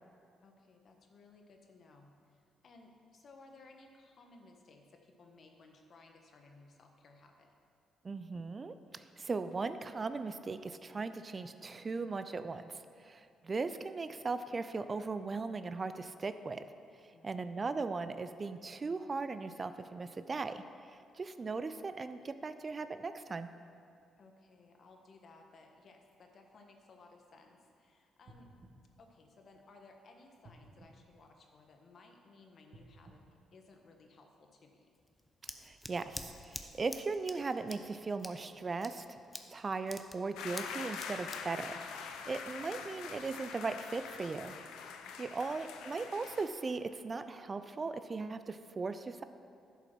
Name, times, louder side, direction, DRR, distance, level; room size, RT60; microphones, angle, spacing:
voice 1, 0.4-7.5 17.1-17.6 24.2-28.5 29.0-34.9 45.0-45.5, left 3 dB, 55° left, 3 dB, 1.3 m, -60 dB
voice 2, 8.0-16.6 17.0-20.6 21.1-23.5 35.6-39.0 39.5-44.5 45.2-49.2, right 4 dB, 40° right, 11 dB, 0.5 m, -38 dB
sound 1, 28.2-29.9 30.4-32.0 32.6-34.3 34.9-35.0, right 2 dB, 55° right, 1.7 m, -60 dB
Scissors, 34.9-42.7, left 1 dB, 15° left, 0.9 m, -49 dB
sound 2, 40.4-46.5, left 6 dB, 80° left, 0.6 m, -44 dB
10.5 x 5.8 x 6.1 m, 2.4 s
supercardioid pair, 60°, 0 cm